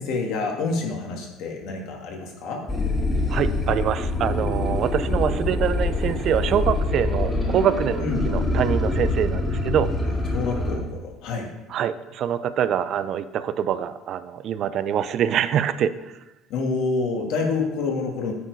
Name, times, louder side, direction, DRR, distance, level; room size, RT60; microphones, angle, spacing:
voice 1, 0.0-2.6 8.0-8.2 10.3-11.5 16.5-18.3, left 3 dB, 65° left, 1 dB, 1.8 m, -27 dB
sound 1, 2.7-10.8, left 2 dB, 20° left, 2.1 m, -25 dB
voice 2, 3.3-9.9 11.7-15.9, right 9 dB, 55° right, 14 dB, 0.5 m, -25 dB
9.2 x 4.5 x 4.7 m, 1.0 s
hypercardioid pair, 75°, 0 cm